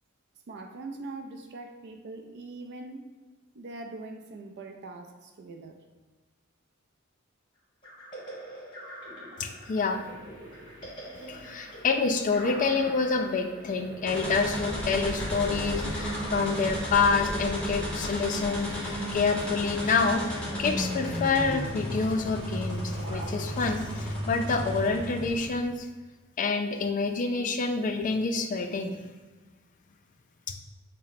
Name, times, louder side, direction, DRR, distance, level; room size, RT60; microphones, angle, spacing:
voice 1, 0.5-3.1 3.5-5.8, right 3 dB, 55° right, 5 dB, 0.4 m, -42 dB
sound 1, 7.8-18.4, equal, 25° left, 1.2 m, -45 dB
voice 2, 9.4-10.0 11.3-20.2 20.6-25.9 26.4-29.0 30.5-30.6, left 4 dB, 40° left, 6 dB, 0.3 m, -27 dB
sound 2, 10.0-25.6, right 1 dB, 15° right, 1.0 m, -50 dB
sound 3, 14.0-25.7, equal, 5° left, 1.1 m, -33 dB
4.0 x 2.1 x 4.0 m, 1.3 s
head